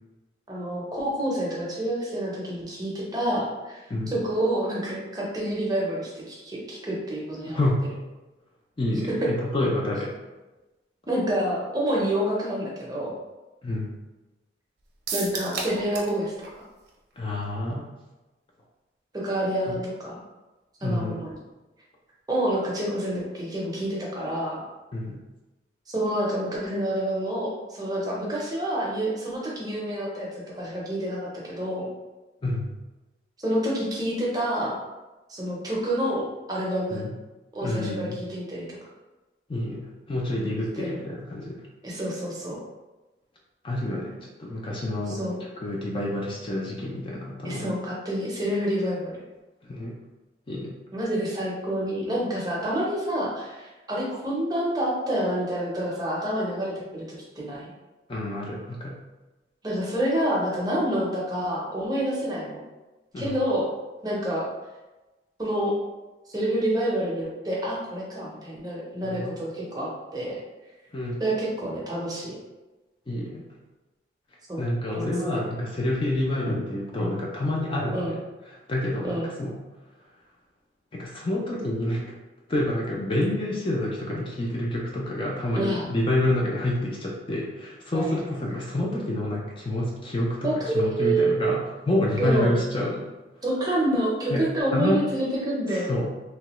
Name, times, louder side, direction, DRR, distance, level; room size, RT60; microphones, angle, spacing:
voice 1, 0.5-3.8 4.1-7.6 11.1-13.1 15.1-16.6 19.1-20.2 20.8-21.3 22.3-24.6 25.9-30.3 30.6-31.9 33.4-34.8 35.3-37.0 37.5-38.7 40.8-41.0 41.8-42.6 45.1-45.4 47.4-49.2 50.9-57.7 59.6-62.6 63.2-63.7 64.0-64.5 65.4-65.7 66.3-70.4 71.2-72.3 74.5-74.6 74.9-75.4 77.9-78.2 79.0-79.3 85.5-85.9 87.9-88.3 90.4-91.5 92.2-92.5 93.4-95.9, right 1 dB, 20° right, -4 dB, 0.6 m, -28 dB
voice 2, 7.5-7.9 8.8-10.2 13.6-13.9 17.2-17.9 19.7-19.8 20.8-21.3 24.9-25.2 32.4-32.7 36.9-37.1 37.6-38.2 39.5-41.7 43.6-45.2 45.6-47.7 49.6-50.0 50.5-50.7 58.1-59.0 63.1-63.4 69.0-69.4 70.9-71.2 73.1-73.6 74.6-78.2 78.5-79.6 80.9-82.2 82.5-93.1 94.3-94.5 94.7-95.0 95.7-96.0, left 1 dB, 30° left, -2 dB, 0.4 m, -28 dB
sound 1, 15.1-16.2 16.4-16.5 16.9-17.0, right 4 dB, 70° right, 0.6 m, -32 dB
2.9 x 2.2 x 2.9 m, 1.1 s
head